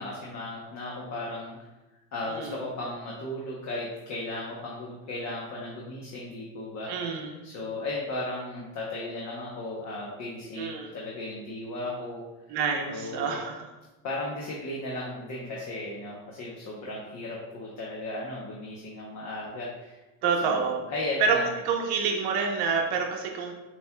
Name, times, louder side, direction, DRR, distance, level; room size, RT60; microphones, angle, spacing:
voice 1, 0.0-1.6 2.1-12.6 12.9-13.4 14.0-20.0 20.4-21.4, left 2 dB, 40° left, -4 dB, 0.9 m, -36 dB
voice 2, 2.3-2.6 6.9-7.3 10.6-10.9 12.5-13.7 20.2-20.8 21.2-21.4 21.6-23.5, right 5 dB, 65° right, 2 dB, 1.0 m, -27 dB
7.3 x 3.0 x 2.2 m, 1.1 s
cardioid pair, 140°, 43 cm